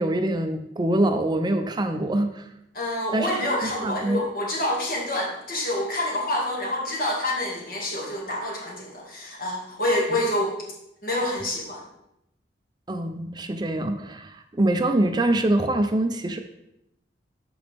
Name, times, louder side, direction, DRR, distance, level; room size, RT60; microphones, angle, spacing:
voice 1, 0.0-2.5 3.1-3.3 3.6-4.3 12.9-16.4, right 1 dB, 25° right, 7 dB, 0.5 m, -24 dB
voice 2, 2.7-10.6 11.0-11.8, left 1 dB, 55° left, -2 dB, 2.0 m, -27 dB
12.0 x 4.1 x 3.4 m, 0.83 s
head